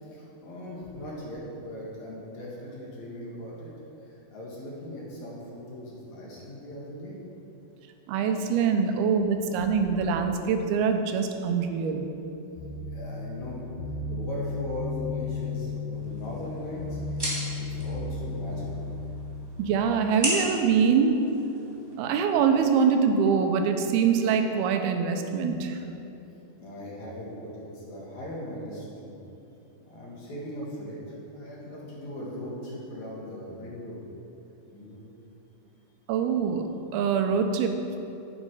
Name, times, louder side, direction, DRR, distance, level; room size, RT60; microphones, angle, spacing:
voice 1, 0.0-3.7 4.0-7.2 12.9-13.6 14.1-17.3 17.5-18.9 26.6-29.1 29.8-31.0 31.3-34.0 34.7-35.0, left 1 dB, 55° left, -5 dB, 3.0 m, -39 dB
voice 2, 8.1-12.1 19.6-21.2 22.0-25.8 36.1-38.0, right 6 dB, 85° right, 6 dB, 2.7 m, -24 dB
sound 1, 12.6-19.5, left 3 dB, 70° left, 2.1 m, -34 dB
sound 2, 15.9-21.9, equal, 5° right, 2.3 m, -36 dB
12.5 x 8.6 x 4.8 m, 2.9 s
omnidirectional pair, 4.4 m